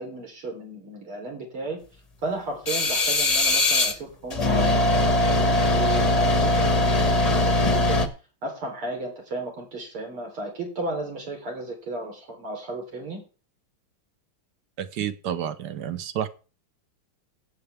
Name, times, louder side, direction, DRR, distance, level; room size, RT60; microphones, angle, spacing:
voice 1, 0.0-1.8 2.2-8.0 8.4-13.2, right 2 dB, 75° right, 1 dB, 4.6 m, -34 dB
sound 1, 2.7-3.9 4.3-8.1, left 2 dB, 30° left, 0.7 m, -21 dB
voice 2, 14.8-16.3, right 9 dB, 60° right, 12 dB, 1.3 m, -30 dB
17.5 x 8.3 x 3.5 m, 0.35 s
omnidirectional pair, 2.4 m